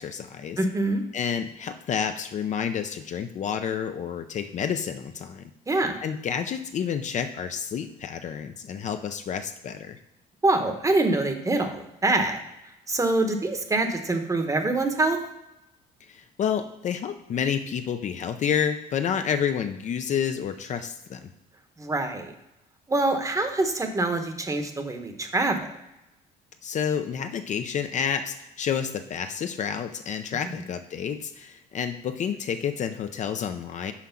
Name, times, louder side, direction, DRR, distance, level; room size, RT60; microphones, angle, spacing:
voice 1, 0.0-0.6 1.1-5.4 5.7-10.0 16.1-21.3 26.6-33.9, left 7 dB, 45° left, 8 dB, 0.5 m, -29 dB
voice 2, 0.6-1.0 5.7-6.0 10.4-12.4 12.9-15.2 21.8-22.3 22.9-25.6, right 2 dB, 20° right, 6 dB, 0.9 m, -25 dB
5.7 x 4.9 x 5.8 m, 0.91 s
cardioid pair, 110°, 17 cm